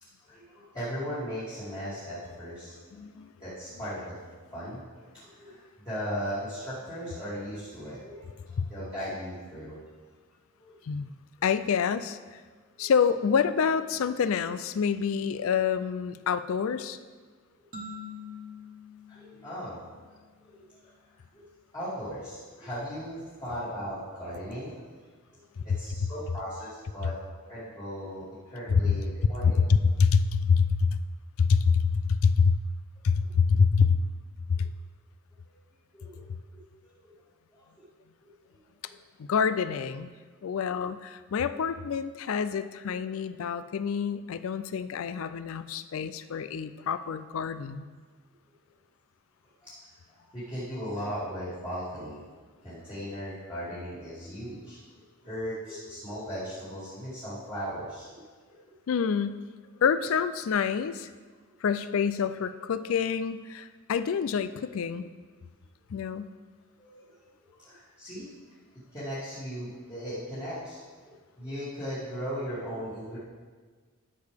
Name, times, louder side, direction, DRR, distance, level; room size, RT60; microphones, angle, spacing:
voice 1, 0.2-2.8 3.4-4.1 4.5-4.8 5.2-9.8 10.6-10.7 12.8-12.9 19.1-19.8 20.4-20.7 21.3-21.4 21.7-24.8 25.3-25.4 25.8-27.1 27.5-29.6 33.2-33.3 35.9-36.2 36.5-37.1 37.5-37.7 38.2-38.3 38.8-38.9 49.6-49.7 50.1-54.8 55.2-58.5 66.8-67.1 67.4-68.3 68.9-73.2, equal, 20° left, -12 dB, 2.6 m, -38 dB
voice 2, 2.9-3.3 8.6-8.7 10.9-11.1 11.4-12.2 12.8-17.0 28.8-29.0 29.4-31.0 31.4-32.6 33.0-34.0 34.5-34.7 39.3-40.1 40.4-47.8 58.9-59.4 59.8-61.1 61.6-65.1 65.9-66.3, left 6 dB, 65° left, 13 dB, 0.4 m, -26 dB
sound 1, 17.7-20.4, left 3 dB, 35° right, 1.4 m, -45 dB
12.5 x 6.6 x 3.5 m, 1.5 s
head